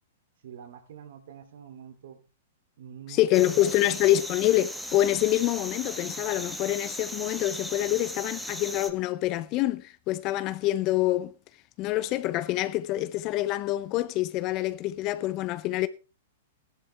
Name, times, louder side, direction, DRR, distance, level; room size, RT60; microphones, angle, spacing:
voice 1, 0.4-2.2 2.8-4.0, right 7 dB, 70° right, 2.6 m, -45 dB
voice 2, 3.1-11.3 11.8-15.9, left 15 dB, 40° left, 0.6 m, -26 dB
sound 1, 3.3-8.9, equal, ahead, 1.4 m, -37 dB
15.0 x 11.5 x 3.4 m
hypercardioid pair, 125°, 0 cm